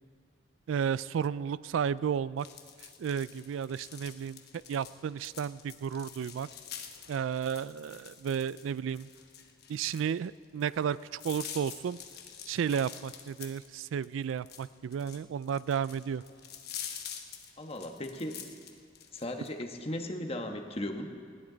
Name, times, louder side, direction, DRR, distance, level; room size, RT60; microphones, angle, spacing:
voice 1, 0.7-2.5 3.0-4.4 4.7-6.5 7.1-9.1 9.7-12.0 12.5-16.2, right 7 dB, 85° right, 19 dB, 0.3 m, -32 dB
sound 1, 2.4-19.5, left 8 dB, 55° left, 1.1 m, -46 dB
voice 2, 17.6-18.4 19.1-21.1, left 1 dB, 30° left, 4 dB, 1.2 m, -37 dB
19.5 x 16.0 x 3.9 m, 2.1 s
head